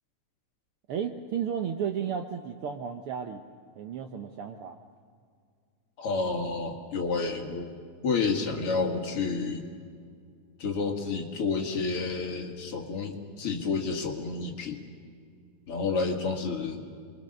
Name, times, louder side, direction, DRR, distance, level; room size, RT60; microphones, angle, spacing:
voice 1, 0.9-3.4 3.7-4.8, right 7 dB, 65° right, 5 dB, 1.4 m, -33 dB
voice 2, 6.0-7.7 8.0-9.6 10.6-14.8 15.7-16.8, left 4 dB, 50° left, 2 dB, 2.6 m, -30 dB
27.5 x 22.5 x 6.6 m, 2.2 s
omnidirectional pair, 3.3 m